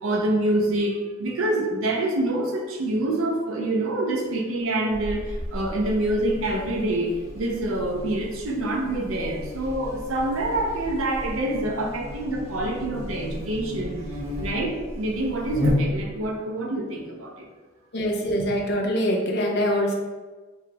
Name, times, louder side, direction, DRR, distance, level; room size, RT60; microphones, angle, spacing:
voice 1, 0.0-13.9 14.4-17.5, right 1 dB, 65° right, 1 dB, 0.5 m, -26 dB
Buzz, 4.9-16.3, left 1 dB, 30° right, 1.2 m, -33 dB
voice 2, 17.9-19.9, equal, 50° left, 0 dB, 0.6 m, -24 dB
3.4 x 2.2 x 2.9 m, 1.3 s
head